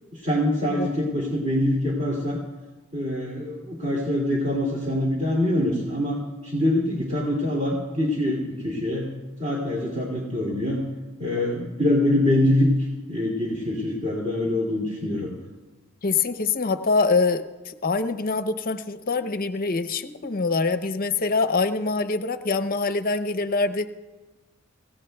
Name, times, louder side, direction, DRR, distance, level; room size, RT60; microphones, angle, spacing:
voice 1, 0.0-2.4 2.9-6.2 6.4-9.1 9.4-10.8 11.2-15.3, left 1 dB, 35° right, -3 dB, 2.6 m, -24 dB
voice 2, 16.0-23.9, left 4 dB, 45° left, 11 dB, 0.7 m, -24 dB
27.0 x 16.5 x 2.3 m, 1.2 s
head